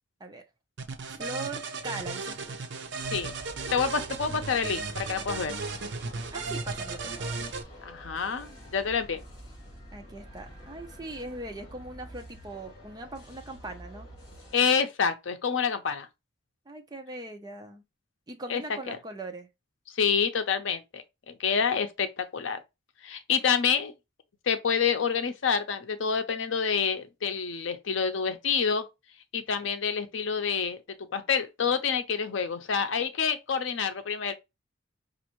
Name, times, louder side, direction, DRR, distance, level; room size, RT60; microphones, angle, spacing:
sound 1, 0.8-7.6, right 4 dB, 65° right, 0.6 m, -35 dB
voice 1, 1.2-2.6 6.3-7.4 9.9-14.1 16.7-17.8 18.3-19.5, right 2 dB, 20° right, 0.6 m, -40 dB
sound 2, 3.0-14.6, equal, 35° left, 2.1 m, -48 dB
voice 2, 3.7-5.6 7.8-9.2 14.5-16.1 18.5-18.6 18.9-19.0 19.9-22.6 23.0-23.9 24.5-28.8 29.3-30.8 31.1-34.3, left 6 dB, 70° left, 0.6 m, -27 dB
5.2 x 2.5 x 2.9 m
head